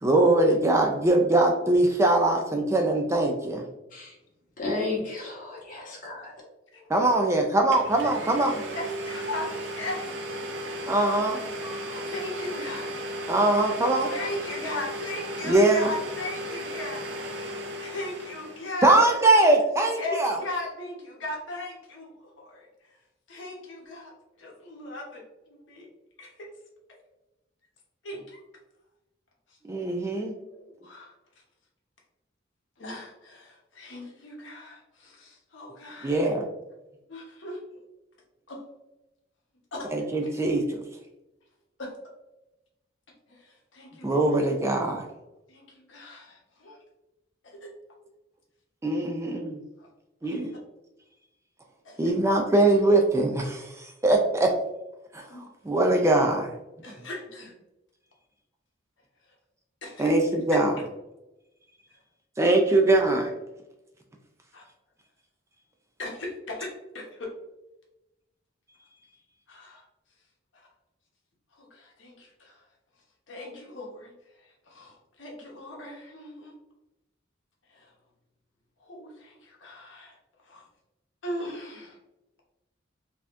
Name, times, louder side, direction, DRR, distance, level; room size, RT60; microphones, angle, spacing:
voice 1, 0.0-3.6 6.9-8.6 10.9-11.4 13.3-14.1 15.4-15.9 18.8-20.4 29.7-30.3 36.0-36.5 39.9-40.8 44.0-45.0 48.8-49.6 50.2-50.5 52.0-54.5 55.1-55.2 55.7-56.5 60.0-60.7 62.4-63.3, right 2 dB, 15° right, 2 dB, 0.3 m, -22 dB
voice 2, 4.6-6.3, left 3 dB, 45° left, -4 dB, 1.2 m, -33 dB
Domestic sounds home sounds, 7.2-7.3 7.7-18.8, right 1 dB, 70° right, 0.6 m, -35 dB
voice 3, 8.3-10.4 10.9-11.0 11.6-13.0 14.1-17.2 17.8-19.2 20.0-22.1 22.4-22.7 23.3-25.9 26.2-26.5 26.9-27.0 28.0-28.4 30.3-31.1 32.8-36.3 37.1-37.6 38.5-38.6 39.7-39.9 40.2-40.3 41.8-41.9 43.3-44.4 45.5-46.8 47.4-47.7 49.0-49.1 49.8-49.9 50.2-50.4 51.8-52.0 55.3-55.5 56.8-57.5 59.8-60.1 64.5-64.7 66.0-67.3 69.5-69.8 71.6-72.6 73.3-74.1 74.4-76.5 77.7-77.9 78.8-80.2 80.4-80.6 81.2-82.0, left 2 dB, 75° left, -1 dB, 1.0 m, -38 dB
4.1 x 2.8 x 2.4 m, 0.96 s
head